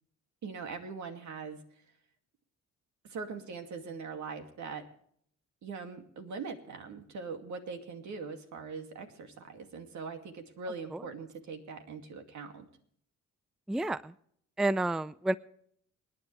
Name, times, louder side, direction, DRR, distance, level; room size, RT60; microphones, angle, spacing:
voice 1, 0.4-1.6 3.0-4.9 5.6-12.7, right 5 dB, 70° right, 5 dB, 2.5 m, -41 dB
voice 2, 13.7-14.1 14.6-15.4, right 2 dB, ahead, 17 dB, 0.4 m, -29 dB
27.5 x 10.0 x 3.3 m, 0.64 s
cardioid pair, 90°, 30 cm